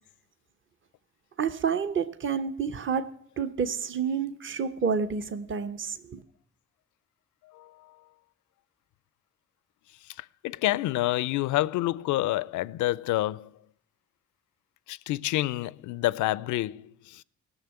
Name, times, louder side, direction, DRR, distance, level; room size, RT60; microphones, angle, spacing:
voice 1, 1.4-3.1 3.4-6.2, right 6 dB, 40° right, 1.0 m, -29 dB
voice 2, 10.4-13.5 14.9-17.2, left 16 dB, 70° left, 0.4 m, -28 dB
16.0 x 6.5 x 9.6 m
supercardioid pair, 55°, 31 cm